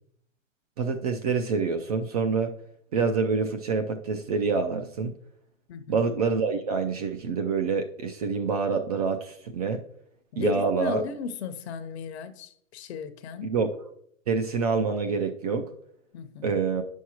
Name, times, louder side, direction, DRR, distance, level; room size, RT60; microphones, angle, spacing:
voice 1, 0.8-2.5 2.9-5.1 5.9-9.8 10.4-11.0 13.4-13.7 14.3-15.7 16.4-16.8, right 5 dB, 30° right, 0.4 m, -26 dB
voice 2, 5.7-6.0 10.3-13.5 16.1-16.6, left 6 dB, 50° left, 0.8 m, -35 dB
9.1 x 6.3 x 2.9 m
hypercardioid pair, 140°, 41 cm